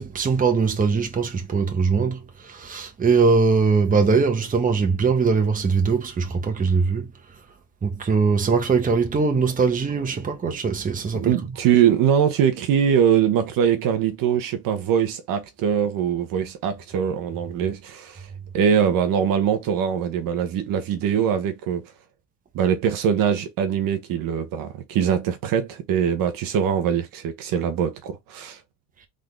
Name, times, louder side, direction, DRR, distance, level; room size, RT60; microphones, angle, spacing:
voice 1, 0.0-7.4 7.8-11.4, right 4 dB, 20° right, 1.2 m, -21 dB
voice 2, 11.1-18.3 18.5-21.9 22.5-28.6, right 8 dB, 55° right, 1.2 m, -22 dB
3.9 x 3.9 x 3.4 m
cardioid pair, 130°, 39 cm